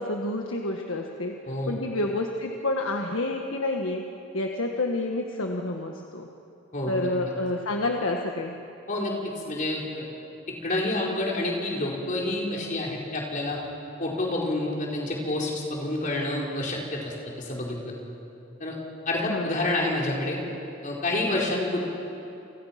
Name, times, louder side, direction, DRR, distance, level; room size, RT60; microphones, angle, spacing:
voice 1, 0.0-1.3 1.7-4.0 4.3-6.3 6.9-8.6 19.2-19.6, left 2 dB, 70° left, 2 dB, 1.6 m, -29 dB
voice 2, 6.7-7.1 8.9-9.1 9.4-10.1 10.6-13.6 14.0-17.9 18.6-18.8 19.1-20.4 20.8-21.8, left 2 dB, 40° left, -2 dB, 4.6 m, -28 dB
30.0 x 24.5 x 5.9 m, 2.8 s
head